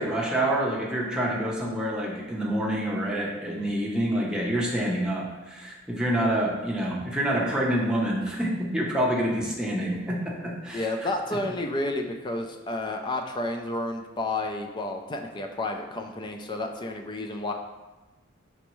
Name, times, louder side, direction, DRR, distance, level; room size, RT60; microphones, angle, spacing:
voice 1, 0.0-10.9, right 1 dB, 5° right, -4 dB, 0.7 m, -27 dB
voice 2, 10.7-17.5, left 2 dB, 20° left, 4 dB, 0.3 m, -31 dB
5.1 x 3.4 x 3.0 m, 1.2 s
head